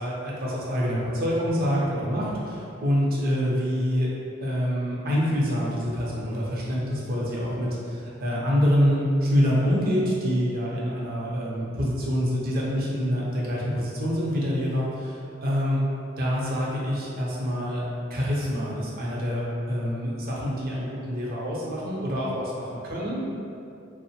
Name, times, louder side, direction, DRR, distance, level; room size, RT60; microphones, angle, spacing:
voice 1, 0.0-4.1 4.4-15.8 16.2-17.8 18.1-23.3, equal, 50° right, -5 dB, 0.5 m, -26 dB
2.7 x 2.0 x 2.7 m, 2.6 s
head